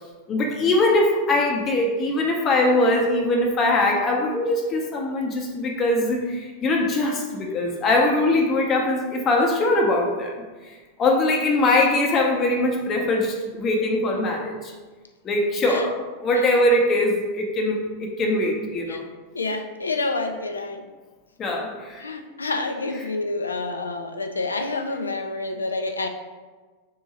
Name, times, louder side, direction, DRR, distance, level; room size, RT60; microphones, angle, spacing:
voice 1, 0.3-10.3 11.0-14.7 15.2-19.0 21.4-22.0, left 2 dB, 30° left, 0 dB, 0.7 m, -22 dB
voice 2, 19.3-20.9 22.0-26.1, left 3 dB, 75° left, 5 dB, 0.4 m, -28 dB
3.6 x 2.7 x 4.2 m, 1.3 s
figure-of-eight pair, 90°, 0 cm